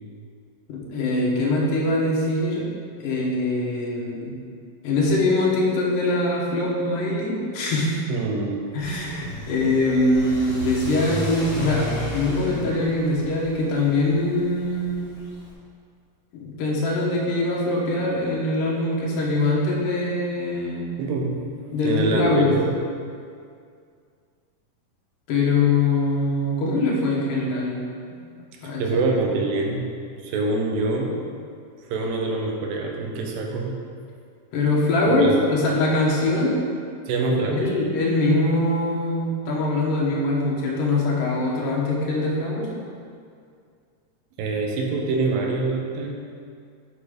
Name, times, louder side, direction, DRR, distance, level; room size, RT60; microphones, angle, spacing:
voice 1, 0.7-2.7 3.0-4.4 4.8-8.0 8.7-15.1 16.3-20.9 21.7-22.5 25.3-27.8 28.6-28.8 34.5-36.6 37.5-42.7, left 2 dB, 75° left, -3 dB, 2.7 m, -23 dB
voice 2, 8.1-8.6 9.1-9.2 21.0-21.3 21.8-22.7 28.8-29.8 30.2-31.1 31.9-33.7 35.1-35.4 37.1-37.7 44.4-46.2, right 3 dB, 80° right, 1 dB, 2.6 m, -24 dB
Car / Accelerating revving vroom, 8.8-15.5, equal, 40° left, 1.0 m, -34 dB
8.4 x 4.3 x 4.9 m, 2.2 s
omnidirectional pair, 4.0 m